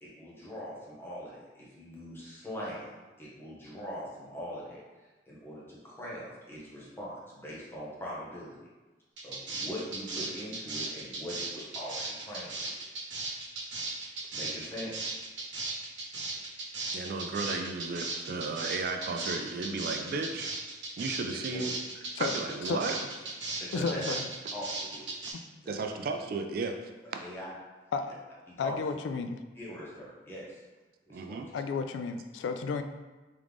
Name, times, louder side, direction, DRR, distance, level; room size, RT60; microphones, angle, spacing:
voice 1, 0.0-4.8 5.3-8.6 9.2-12.8 14.3-15.1 21.2-21.6 23.6-24.0 24.5-25.1 25.6-25.8 27.2-27.5 28.6-29.0 29.5-30.6 31.1-31.4, equal, 15° left, -7 dB, 1.0 m, -42 dB
sound 1, 9.2-25.3, right 3 dB, 85° right, 1.0 m, -36 dB
voice 2, 16.9-20.6 21.0-21.7 22.2-23.0 25.7-26.8 27.1-27.2 31.1-31.5, right 3 dB, 55° right, 5 dB, 0.3 m, -34 dB
voice 3, 23.7-24.3 27.9-28.1 28.6-29.4 31.5-32.8, left 5 dB, 85° left, 8 dB, 0.3 m, -32 dB
3.7 x 3.2 x 3.5 m, 1.2 s
head